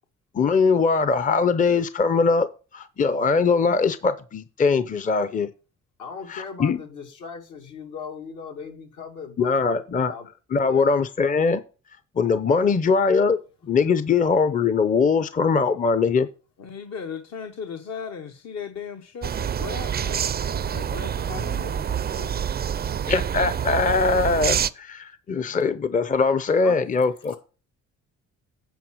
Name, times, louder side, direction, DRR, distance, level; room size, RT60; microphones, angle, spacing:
voice 1, 0.3-2.5 2.7-5.5 6.3-6.8 9.4-10.1 10.5-11.6 12.2-16.3 23.1-27.3, left 4 dB, 25° left, 0.6 m, -21 dB
voice 2, 6.0-10.3 10.6-11.0, left 5 dB, 75° left, 2.5 m, -38 dB
voice 3, 16.6-22.4 25.3-25.7 26.6-26.8, left 6 dB, 60° left, 1.1 m, -37 dB
sound 1, 19.2-24.7, right 8 dB, 35° right, 0.4 m, -27 dB
9.2 x 4.6 x 6.2 m
cardioid pair, 90°, 30 cm